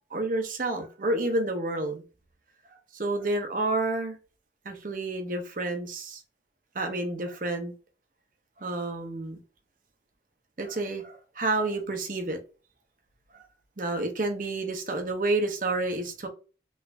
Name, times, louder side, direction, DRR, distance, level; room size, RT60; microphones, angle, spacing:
voice 1, 0.1-2.0 2.9-4.1 4.7-6.2 6.7-7.7 8.6-9.4 10.6-12.4 13.8-16.3, right 2 dB, 50° right, 0.7 m, -29 dB
3.1 x 2.5 x 3.2 m
head